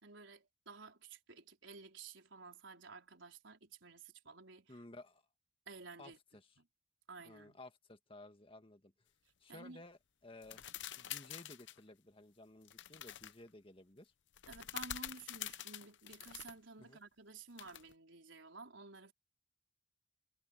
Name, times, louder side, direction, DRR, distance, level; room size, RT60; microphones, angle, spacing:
voice 1, 0.0-4.7 5.7-6.2 6.6-6.7 7.1-7.6 9.5-9.8 14.5-19.1, right 4 dB, 80° right, 4.3 m, -53 dB
voice 2, 4.7-5.2 6.0-6.1 7.2-8.9 9.4-10.7 11.0-14.1 16.8-17.0, left 2 dB, 30° left, 1.9 m, -56 dB
sound 1, 10.4-11.8 12.7-13.3 14.3-16.5 17.6-17.9, left 11 dB, 70° left, 0.8 m, -46 dB
head